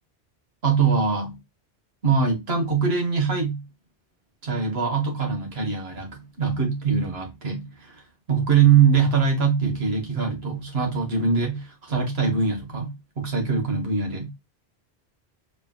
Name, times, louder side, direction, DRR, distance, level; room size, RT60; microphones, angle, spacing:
voice 1, 0.6-1.4 2.0-3.6 4.4-8.0 8.3-14.3, right 6 dB, 70° right, 1.7 m, -23 dB
4.8 x 3.3 x 2.3 m
omnidirectional pair, 1.1 m